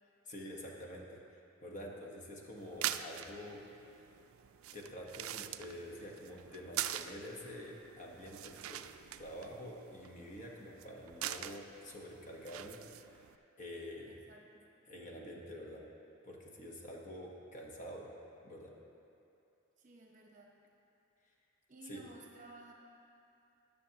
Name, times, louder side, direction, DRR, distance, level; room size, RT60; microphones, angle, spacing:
voice 1, 0.3-1.2 1.6-3.6 4.7-8.8 9.2-13.3 13.6-14.2 14.9-15.8 16.2-18.1 18.4-18.7 21.9-22.0, equal, 35° left, -1 dB, 1.1 m, -47 dB
sound 1, 2.6-13.4, right 12 dB, 75° right, 0.3 m, -44 dB
voice 2, 14.0-14.7 19.8-20.6 21.7-22.7, right 2 dB, 40° right, 0 dB, 0.9 m, -56 dB
20.0 x 6.9 x 2.9 m, 2.7 s
head